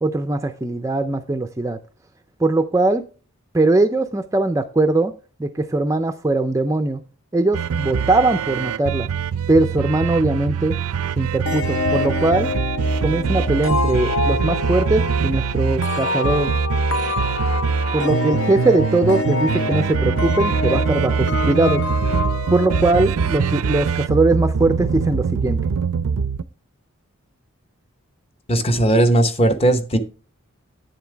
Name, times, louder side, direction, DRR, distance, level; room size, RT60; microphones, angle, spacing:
voice 1, 0.0-1.8 2.4-3.0 3.5-5.1 5.4-7.0 7.3-9.1 9.5-10.7 11.2-12.5 13.0-16.5 17.9-21.8 22.5-25.6, right 2 dB, 15° right, 0.3 m, -20 dB
sound 1, 7.5-26.4, right 6 dB, 80° right, 0.4 m, -23 dB
sound 2, 11.5-23.9, left 3 dB, 65° left, 0.8 m, -26 dB
voice 2, 28.5-30.0, right 1 dB, 25° left, 0.9 m, -17 dB
9.4 x 7.1 x 3.3 m
head